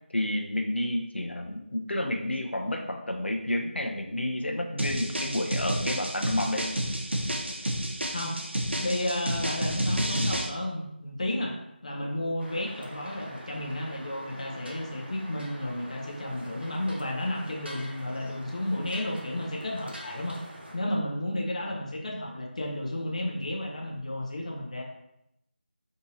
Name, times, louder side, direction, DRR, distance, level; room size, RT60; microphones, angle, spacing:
voice 1, 0.1-6.7, left 1 dB, 85° left, 3 dB, 0.5 m, -30 dB
sound 1, 4.8-10.5, right 1 dB, 90° right, 0.5 m, -30 dB
voice 2, 8.8-11.6 11.8-20.4 20.7-24.8, left 1 dB, 40° left, 0 dB, 0.5 m, -32 dB
sound 2, 12.4-20.8, equal, 70° right, 0.9 m, -45 dB
3.5 x 2.8 x 2.7 m, 0.81 s
figure-of-eight pair, 170°, 6 cm